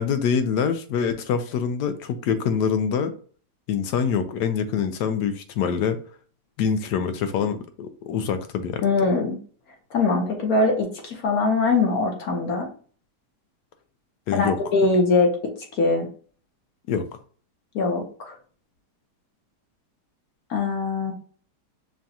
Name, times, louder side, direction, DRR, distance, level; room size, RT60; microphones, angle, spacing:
voice 1, 0.0-3.1 3.7-6.0 6.6-8.8 14.3-14.6 16.9-17.0, left 7 dB, 85° left, 1.2 m, -25 dB
voice 2, 8.8-9.4 9.9-12.7 14.3-15.4 15.8-16.1 17.7-18.3 20.5-21.1, left 3 dB, 65° left, 1.4 m, -22 dB
5.8 x 2.3 x 2.7 m
omnidirectional pair, 1.8 m